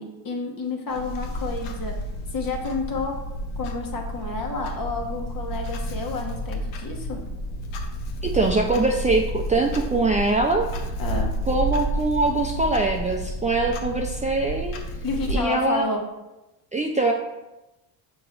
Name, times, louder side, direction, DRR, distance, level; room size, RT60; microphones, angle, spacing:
voice 1, 0.0-1.9 2.3-3.1 3.6-7.2 11.0-11.3 15.0-16.0, left 3 dB, 45° left, 2 dB, 1.3 m, -30 dB
Clock, 0.9-15.4, right 1 dB, 80° left, 1.0 m, -30 dB
voice 2, 8.2-10.7 11.5-14.8 15.3-15.9 16.7-17.1, right 2 dB, 15° right, 1 dB, 0.4 m, -23 dB
6.7 x 3.1 x 4.7 m, 1.0 s
supercardioid pair, 95°, 48 cm